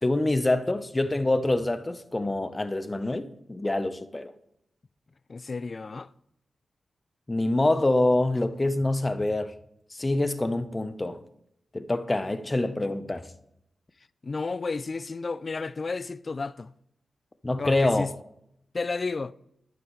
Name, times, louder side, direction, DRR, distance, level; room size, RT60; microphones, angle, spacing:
voice 1, 0.0-4.3 7.3-9.5 9.9-11.2 11.7-13.3 17.4-18.1, left 2 dB, 25° left, 0.7 m, -26 dB
voice 2, 5.3-6.1 14.2-16.7 17.6-18.1 18.7-19.3, left 4 dB, 45° left, 0.3 m, -32 dB
11.5 x 9.0 x 3.1 m
cardioid pair, 65°, 0 cm